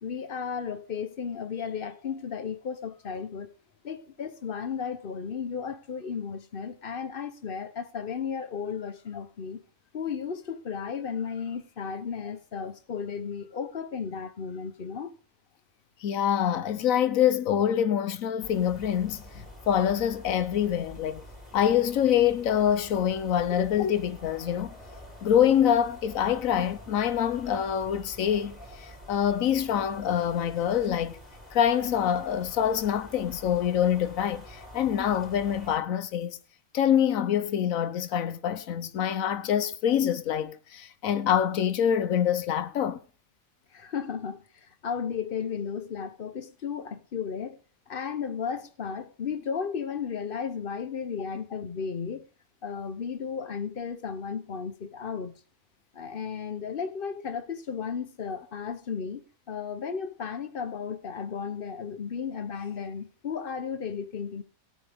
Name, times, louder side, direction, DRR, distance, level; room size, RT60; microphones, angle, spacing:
voice 1, 0.0-3.5 3.8-9.6 9.9-15.1 23.6-23.7 43.7-47.6 47.9-52.2 52.6-55.3 55.9-64.4, left 6 dB, 45° left, 1.0 m, -34 dB
voice 2, 16.0-21.2 21.5-24.7 25.2-31.2 31.5-36.4 36.7-43.0, left 9 dB, 85° left, 1.3 m, -25 dB
sound 1, 18.4-35.8, equal, ahead, 4.7 m, -47 dB
18.0 x 8.5 x 3.5 m
omnidirectional pair, 1.4 m